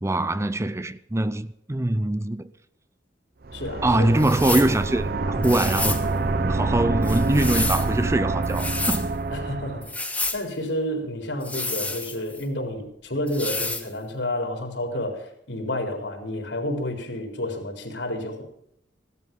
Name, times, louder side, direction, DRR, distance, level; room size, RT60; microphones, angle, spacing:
voice 1, 0.0-2.5 3.8-6.1 6.4-9.1, right 1 dB, 15° right, 0.5 m, -23 dB
sound 1, 3.4-9.9, right 3 dB, 55° right, 0.8 m, -26 dB
voice 2, 3.5-4.2 9.3-18.4, left 1 dB, 80° left, 4.0 m, -30 dB
sound 2, 4.2-4.7 5.4-6.1 7.0-7.9 8.4-9.0 9.8-10.4 11.4-12.4 13.3-13.9, left 3 dB, 10° left, 1.6 m, -29 dB
17.0 x 12.5 x 5.4 m
head